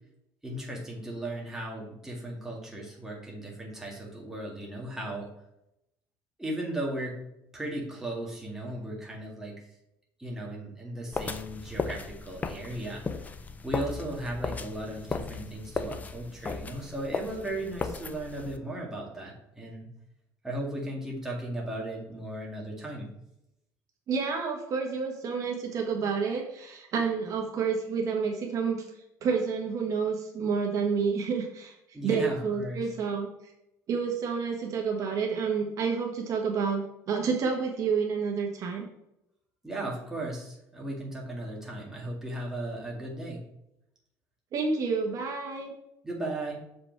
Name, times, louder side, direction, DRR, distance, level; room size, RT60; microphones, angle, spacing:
voice 1, 0.4-5.3 6.4-7.1 7.5-9.6 10.2-13.0 13.6-19.9 20.4-23.1 31.9-32.8 39.6-43.4 46.0-46.5, right 1 dB, 5° right, -3 dB, 2.0 m, -36 dB
sound 1, 11.1-18.6, left 4 dB, 20° left, 0.5 m, -36 dB
voice 2, 24.1-28.8 29.2-33.5 33.9-38.8 44.5-45.7, right 5 dB, 45° right, 1 dB, 1.2 m, -29 dB
7.2 x 5.1 x 4.6 m, 0.84 s
cardioid pair, 135°, 7 cm